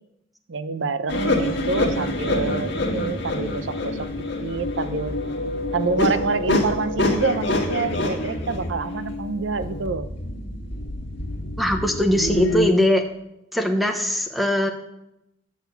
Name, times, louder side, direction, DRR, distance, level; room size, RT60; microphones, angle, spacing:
voice 1, 0.5-5.2 5.7-10.1, right 4 dB, 80° right, 12 dB, 0.6 m, -27 dB
sound 1, 1.1-12.7, left 1 dB, 65° left, 1.6 m, -26 dB
voice 2, 11.6-13.1 13.5-14.7, left 1 dB, ahead, 5 dB, 0.7 m, -21 dB
8.2 x 6.3 x 6.8 m, 0.84 s
head